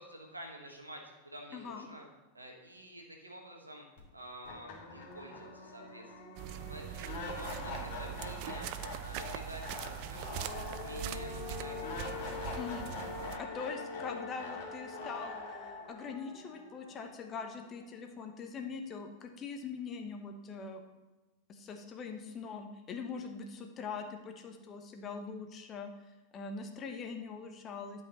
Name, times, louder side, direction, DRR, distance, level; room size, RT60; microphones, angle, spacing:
voice 1, 0.0-2.1 2.3-3.9 4.1-6.4 6.7-8.7 9.0-10.5 10.8-12.1, right 1 dB, 80° right, 1 dB, 1.5 m, -49 dB
voice 2, 1.5-1.9 12.6-12.9 13.4-20.8 21.5-28.0, left 5 dB, 30° left, 4 dB, 1.0 m, -42 dB
sound 1, 4.0-4.1 4.4-17.5, left 3 dB, 50° left, 2.1 m, -43 dB
sound 2, 6.4-13.4, right 12 dB, 45° right, 0.4 m, -42 dB
11.5 x 5.3 x 4.1 m, 1.1 s
figure-of-eight pair, 90°, 0 cm